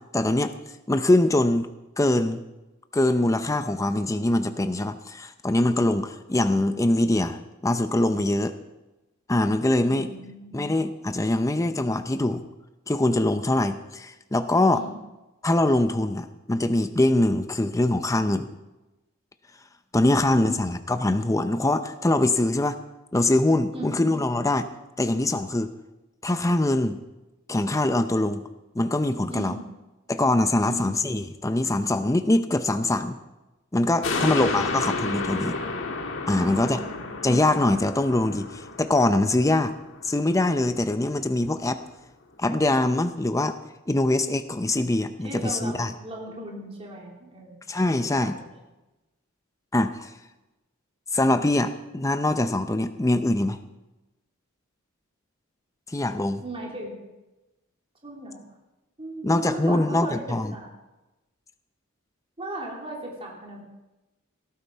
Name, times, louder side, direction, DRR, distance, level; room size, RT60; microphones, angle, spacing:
voice 1, 0.1-0.5 0.9-1.7 2.0-2.4 2.9-8.5 9.3-10.1 10.5-12.4 12.9-14.8 15.4-18.5 19.9-22.8 23.1-24.7 25.0-25.7 26.2-27.0 27.5-28.5 28.8-29.6 30.1-33.2 33.7-35.6 36.3-36.8 37.2-39.7 40.0-41.8 42.4-43.6 43.9-45.9 47.7-48.4 49.7-50.1 51.1-53.6 55.9-56.4 59.2-60.5, left 1 dB, 15° left, 9 dB, 0.6 m, -23 dB
voice 2, 9.8-10.6 14.7-15.0 20.1-20.7 23.7-24.0 29.3-29.7 30.6-30.9 34.1-34.5 36.3-37.1 45.2-47.6 48.0-48.4 56.4-57.1 58.0-58.4 59.0-60.7 62.4-63.6, right 1 dB, 30° right, -2 dB, 3.2 m, -38 dB
sound 1, 34.0-40.7 41.1-41.2, left 3 dB, 65° left, 1.6 m, -31 dB
17.5 x 14.0 x 4.6 m, 1.0 s
head